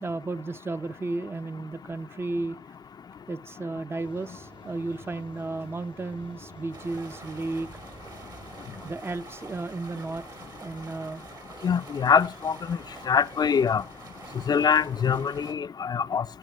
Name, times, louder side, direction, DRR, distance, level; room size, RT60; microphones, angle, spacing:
voice 1, 0.0-2.6 3.3-7.7 8.8-10.2 10.6-11.2, right 3 dB, 30° right, 0.6 m, -33 dB
sound 1, 4.0-9.0, right 3 dB, 85° right, 4.3 m, -51 dB
sound 2, 6.7-15.5, right 3 dB, 60° right, 2.9 m, -46 dB
voice 2, 11.6-12.8 13.1-13.8 14.5-16.2, left 6 dB, 60° left, 0.5 m, -24 dB
9.1 x 9.0 x 6.8 m
cardioid pair, 55°, 8 cm